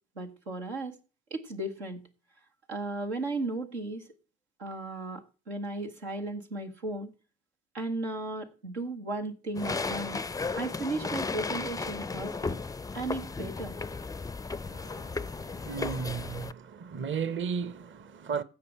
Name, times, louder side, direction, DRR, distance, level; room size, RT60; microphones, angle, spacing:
voice 1, 0.2-1.0 1.3-2.0 2.7-4.1 4.6-7.1 7.7-10.2 10.6-12.6 12.9-13.8, right 2 dB, 90° right, 1.1 m, -35 dB
sound 1, 9.5-16.5, left 4 dB, 10° left, 0.4 m, -35 dB
voice 2, 14.6-18.4, right 6 dB, 40° right, 0.8 m, -35 dB
15.5 x 5.4 x 4.5 m
figure-of-eight pair, 45°, 32 cm